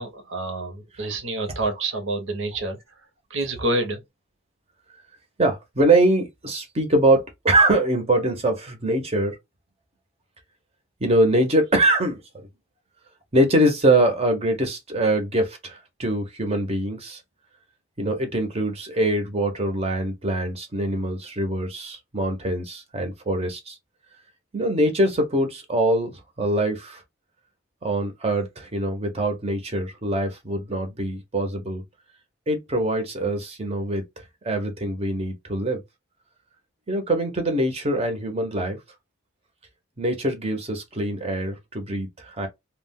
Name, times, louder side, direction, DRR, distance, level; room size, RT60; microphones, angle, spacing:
voice 1, 0.0-2.8 3.3-4.0, right 2 dB, 65° right, 0.8 m, -28 dB
voice 2, 5.4-9.4 11.0-12.5 13.3-17.2 18.0-23.8 24.5-27.0 27.8-31.8 32.5-34.0 34.4-35.8 36.9-38.8 40.0-42.5, right 1 dB, 30° right, 0.7 m, -23 dB
2.3 x 2.1 x 3.5 m
head